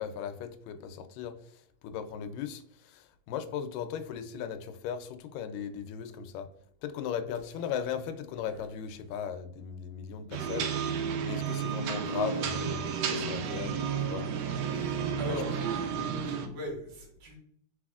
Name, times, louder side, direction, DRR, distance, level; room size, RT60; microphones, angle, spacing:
voice 1, 0.0-1.4 1.8-6.5 6.8-10.8 11.2-13.7 14.1-14.3 14.7-14.8, left 8 dB, 85° left, 8 dB, 2.2 m, -37 dB
sound 1, 10.3-16.5, right 6 dB, 90° right, 1.5 m, -32 dB
voice 2, 15.2-17.4, equal, 70° right, -1 dB, 2.7 m, -40 dB
4.6 x 4.1 x 2.3 m, 0.67 s
omnidirectional pair, 3.8 m